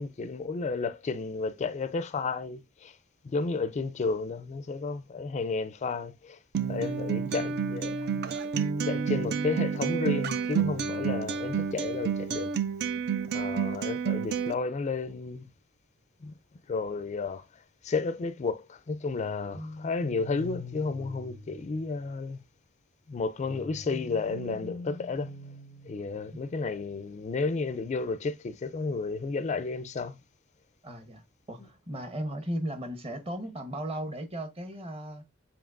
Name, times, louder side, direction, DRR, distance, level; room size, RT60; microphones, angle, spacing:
voice 1, 0.0-2.9 3.3-6.4 6.7-8.1 8.8-12.5 13.3-15.4 16.2-16.3 16.7-17.4 17.8-22.4 23.1-25.3 25.9-30.1, left 4 dB, 35° left, 0.4 m, -32 dB
Acoustic guitar, 6.5-14.5, right 6 dB, 50° right, 0.4 m, -30 dB
sound 1, 19.1-22.3 23.4-26.4, left 1 dB, 80° right, 1.3 m, -43 dB
voice 2, 30.8-35.2, right 1 dB, 30° right, 1.0 m, -36 dB
7.1 x 2.9 x 2.4 m
head